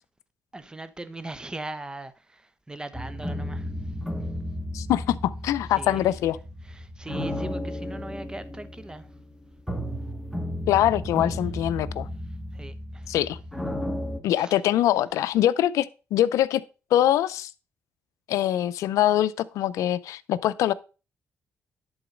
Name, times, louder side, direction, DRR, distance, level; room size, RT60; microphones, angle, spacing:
voice 1, 0.5-3.7 5.8-6.0 6.7-9.1 12.5-13.1 14.4-14.6, right 2 dB, 15° right, 1.0 m, -40 dB
sound 1, 2.9-14.2, left 1 dB, ahead, 1.7 m, -34 dB
voice 2, 4.7-6.4 10.7-12.1 13.1-13.4 14.2-16.6 16.9-17.5 18.3-20.7, left 12 dB, 85° left, 0.5 m, -23 dB
11.0 x 4.0 x 5.1 m
cardioid pair, 80°, 5 cm